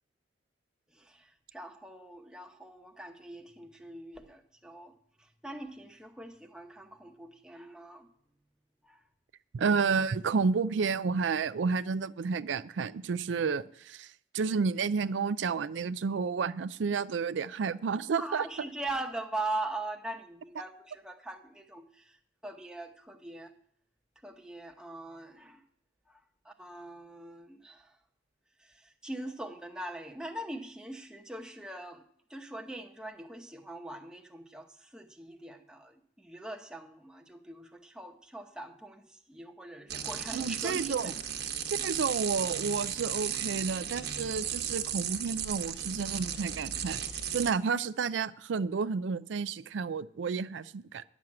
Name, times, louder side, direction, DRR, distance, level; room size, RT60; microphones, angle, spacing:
voice 1, 0.9-4.9 5.2-8.1 8.8-9.0 18.2-22.2 22.4-23.5 24.2-25.6 26.1-26.2 26.4-27.9 28.6-32.0 32.3-41.2, right 2 dB, 5° right, 0.9 m, -41 dB
voice 2, 9.5-18.5 40.3-41.1 41.8-47.0 47.3-51.0, right 5 dB, 85° right, 0.4 m, -31 dB
sound 1, 39.9-47.5, right 9 dB, 60° right, 1.2 m, -35 dB
11.0 x 6.1 x 8.6 m
head